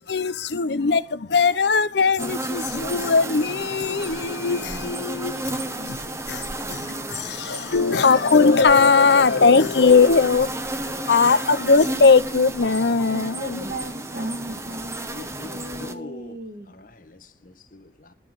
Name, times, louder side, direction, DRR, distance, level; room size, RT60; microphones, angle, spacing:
voice 1, 0.1-6.0 6.3-10.5 10.8-13.6, left 4 dB, 70° left, 0.7 m, -19 dB
sound 1, 2.2-15.9, right 2 dB, 15° right, 0.9 m, -32 dB
voice 2, 13.1-16.7, right 1 dB, 50° right, 2.1 m, -35 dB
voice 3, 14.7-16.4 16.7-18.1, left 2 dB, 50° left, 1.4 m, -43 dB
12.0 x 5.7 x 7.7 m
head